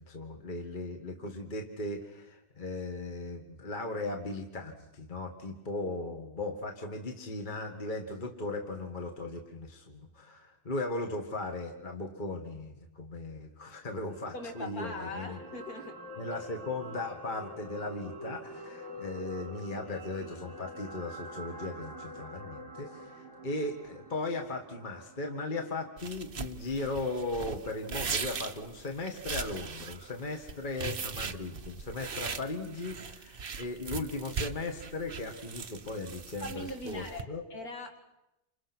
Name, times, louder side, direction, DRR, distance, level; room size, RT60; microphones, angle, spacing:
voice 1, 0.0-15.4 16.2-37.4, left 2 dB, 30° left, 3 dB, 1.9 m, -37 dB
sound 1, 14.1-26.4 26.8-26.9, equal, 5° left, 2.6 m, -46 dB
voice 2, 14.3-16.0 36.4-37.2 37.5-38.0, left 1 dB, 55° left, 4 dB, 3.1 m, -40 dB
sound 2, 26.0-37.2, right 5 dB, 40° right, 1.0 m, -39 dB
29.0 x 26.5 x 6.2 m, 0.91 s
omnidirectional pair, 1.9 m